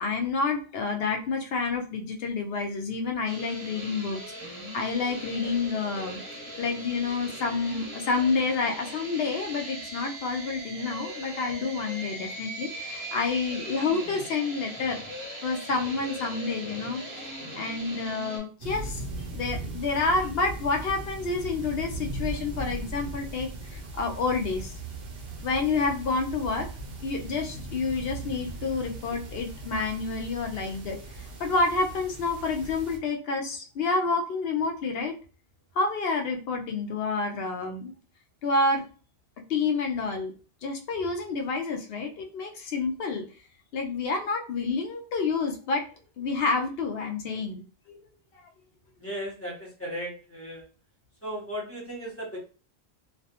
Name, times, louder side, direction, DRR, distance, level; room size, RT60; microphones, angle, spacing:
voice 1, 0.0-6.2 6.6-15.0 15.4-17.0 17.5-19.0 19.3-24.7 25.4-26.7 27.0-31.0 31.4-35.1 35.8-37.9 38.4-38.8 39.5-40.3 40.6-43.2 43.7-45.8 46.2-47.6 47.9-48.0 48.3-48.4, left 4 dB, 70° left, 3 dB, 0.8 m, -29 dB
sound 1, 3.2-18.4, right 1 dB, 20° right, 0.6 m, -39 dB
sound 2, 18.6-33.0, right 2 dB, 65° right, 0.8 m, -38 dB
voice 2, 49.0-50.7 51.2-52.4, equal, 15° left, -5 dB, 0.7 m, -36 dB
2.4 x 2.1 x 2.8 m, 0.37 s
omnidirectional pair, 1.1 m